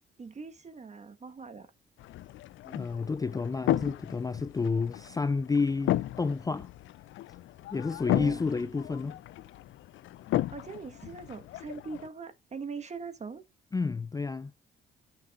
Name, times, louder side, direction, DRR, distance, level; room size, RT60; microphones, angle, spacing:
voice 1, 0.2-1.7 8.1-8.4 10.5-13.4, right 4 dB, 35° right, 1.5 m, -41 dB
sound 1, 2.0-12.1, left 14 dB, 75° left, 0.5 m, -35 dB
voice 2, 2.7-6.7 7.7-9.2 13.7-14.5, left 4 dB, 20° left, 0.4 m, -30 dB
14.5 x 6.6 x 2.5 m
cardioid pair, 90°, 20 cm